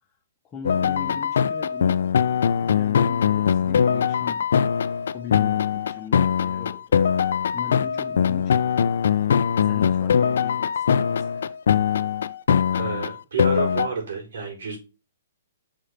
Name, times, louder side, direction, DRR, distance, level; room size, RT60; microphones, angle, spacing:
voice 1, 0.4-2.1 2.5-7.0 7.5-8.7 9.1-11.6, left 7 dB, 20° left, 1.0 m, -39 dB
sound 1, 0.6-13.9, left 7 dB, 75° left, 0.6 m, -22 dB
voice 2, 12.7-14.8, right 5 dB, 75° right, 5.1 m, -30 dB
6.3 x 5.1 x 5.7 m
hypercardioid pair, 155°, 0 cm